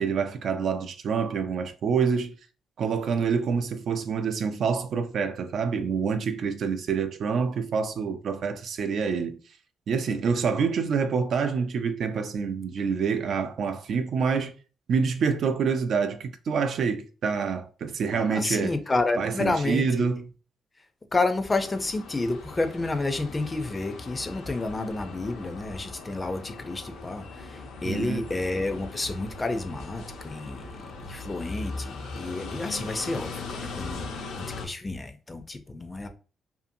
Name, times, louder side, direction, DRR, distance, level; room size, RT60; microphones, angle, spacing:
voice 1, 0.0-2.3 2.8-9.4 9.9-14.5 14.9-18.7 19.2-20.3 27.8-28.3, right 5 dB, 60° right, 0.4 m, -27 dB
voice 2, 18.1-20.1 21.1-34.1 34.4-36.1, left 2 dB, 25° left, 0.4 m, -30 dB
sound 1, 21.5-34.7, left 3 dB, 80° left, 0.6 m, -40 dB
2.6 x 2.5 x 2.6 m
cardioid pair, 90°, 0 cm